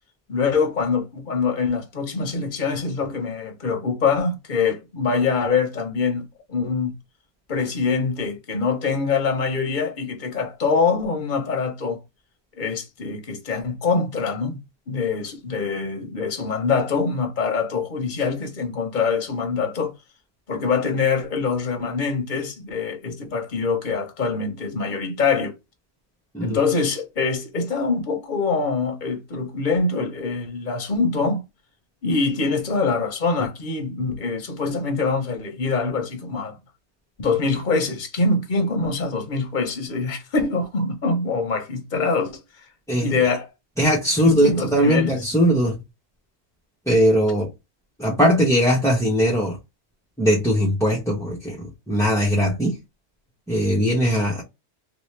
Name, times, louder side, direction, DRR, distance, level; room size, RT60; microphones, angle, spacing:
voice 1, 0.3-6.9 7.5-12.0 12.6-14.6 14.9-19.9 20.5-25.6 26.4-31.4 32.0-36.6 37.2-42.4 43.0-43.5 44.2-45.3 54.0-54.2, left 4 dB, 45° left, 1.0 m, -24 dB
voice 2, 42.9-43.3 43.8-45.7 46.9-47.5 48.0-49.6 50.2-52.8 53.5-54.4, equal, 5° left, 0.8 m, -20 dB
2.9 x 2.8 x 3.2 m
omnidirectional pair, 1.2 m